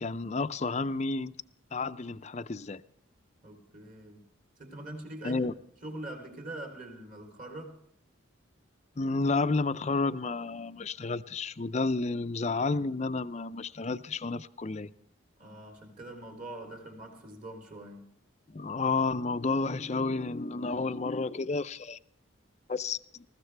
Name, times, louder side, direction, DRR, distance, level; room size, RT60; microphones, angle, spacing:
voice 1, 0.0-1.3 1.7-2.8 5.2-5.5 9.0-14.9 18.5-22.0 22.7-23.2, left 3 dB, 35° left, 0.5 m, -31 dB
voice 2, 3.4-4.2 4.6-5.5 5.8-7.8 15.4-18.0, right 1 dB, 40° right, 3.4 m, -43 dB
20.0 x 15.5 x 3.4 m
head